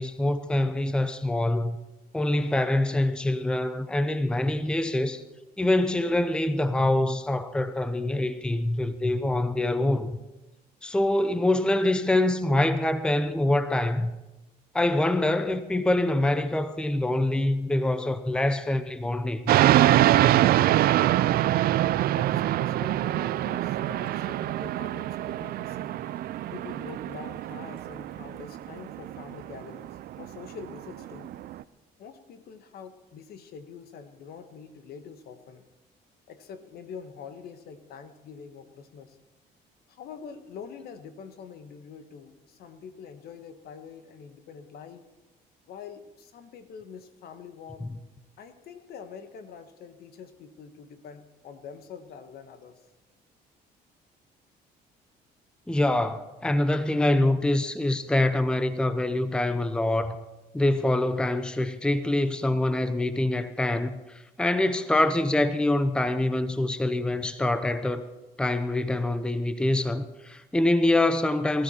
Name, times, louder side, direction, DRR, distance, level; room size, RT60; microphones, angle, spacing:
voice 1, 0.0-1.8 2.1-5.2 5.6-10.2 10.8-14.1 14.7-19.4 47.8-47.9 55.7-60.2 60.5-68.1 68.4-71.6, left 1 dB, 5° left, 0.6 m, -25 dB
sound 1, 19.5-31.6, right 13 dB, 65° right, 0.5 m, -24 dB
voice 2, 22.0-26.0 26.5-31.4 32.0-35.7 36.3-39.2 39.9-45.1 45.7-47.9 48.4-52.8, left 6 dB, 65° left, 1.4 m, -45 dB
19.5 x 13.5 x 4.4 m
cardioid pair, 110°, 17 cm